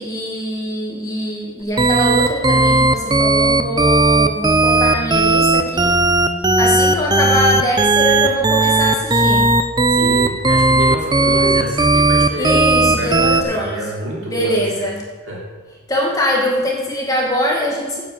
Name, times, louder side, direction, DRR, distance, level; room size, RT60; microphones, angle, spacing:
voice 1, 0.0-5.9 6.6-9.4 12.4-13.9 14.2-15.0 15.9-18.0, equal, 15° left, -2 dB, 1.9 m, -22 dB
sound 1, 1.8-13.4, right 2 dB, 20° right, 0.6 m, -15 dB
voice 2, 9.9-12.5 12.8-14.6 14.8-14.9 15.3-15.4, right 1 dB, 60° right, -4 dB, 3.6 m, -27 dB
9.4 x 8.1 x 7.5 m, 1.3 s
head